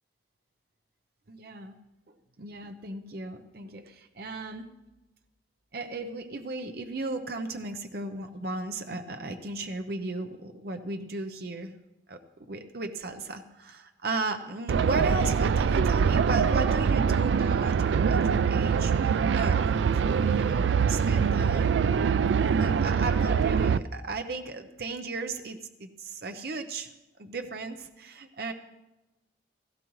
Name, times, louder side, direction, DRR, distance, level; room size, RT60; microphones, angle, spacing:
voice 1, 1.3-1.8 2.4-4.7 5.7-11.7 12.1-12.2 12.5-19.7 20.0-21.7 22.6-26.9 27.2-28.5, right 2 dB, 55° right, 7 dB, 0.7 m, -35 dB
sound 1, 14.7-23.8, right 6 dB, 80° right, 0.3 m, -24 dB
16.5 x 15.5 x 3.1 m, 0.99 s
head